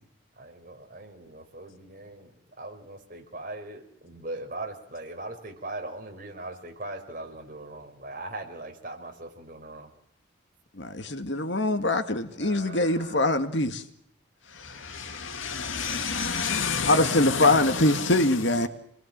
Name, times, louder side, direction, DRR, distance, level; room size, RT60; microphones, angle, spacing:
voice 1, 0.4-2.3 2.6-9.9 12.3-13.3 14.7-14.8, right 2 dB, 45° right, 4 dB, 5.1 m, -40 dB
voice 2, 10.8-13.8 16.9-18.7, left 2 dB, 60° left, 8 dB, 1.9 m, -23 dB
voice 3, 14.5-18.7, left 5 dB, 75° left, 7 dB, 2.6 m, -30 dB
27.5 x 21.0 x 7.5 m, 0.72 s
head